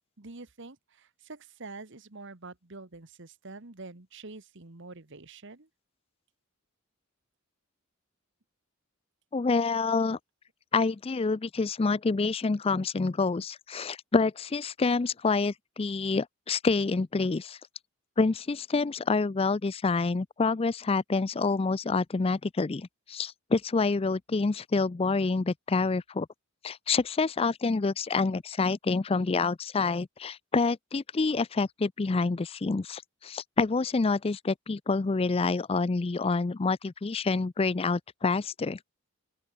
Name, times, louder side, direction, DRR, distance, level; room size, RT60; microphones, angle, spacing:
voice 1, 0.2-5.7, right 3 dB, 60° right, 1.6 m, -46 dB
voice 2, 9.3-10.2 10.7-17.6 18.2-26.3 26.6-38.8, left 4 dB, 25° left, 0.4 m, -27 dB
open air
head